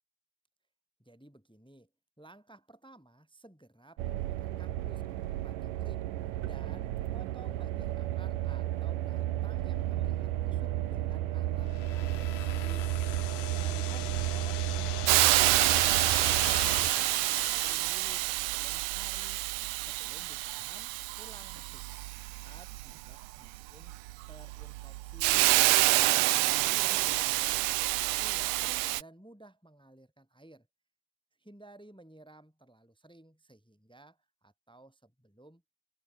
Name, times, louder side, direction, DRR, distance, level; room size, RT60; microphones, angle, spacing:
voice 1, 1.0-1.9 2.2-6.1 6.4-19.4 19.8-20.9 21.2-23.9 24.3-25.6 26.0-30.7 31.4-35.6, right 2 dB, ahead, 5.7 m, -55 dB
sound 1, 4.0-16.9, right 14 dB, 65° right, 2.3 m, -33 dB
sound 2, 11.6-17.7, left 14 dB, 85° left, 1.6 m, -41 dB
Hiss, 15.1-29.0, right 20 dB, 85° right, 2.6 m, -28 dB
omnidirectional pair, 4.7 m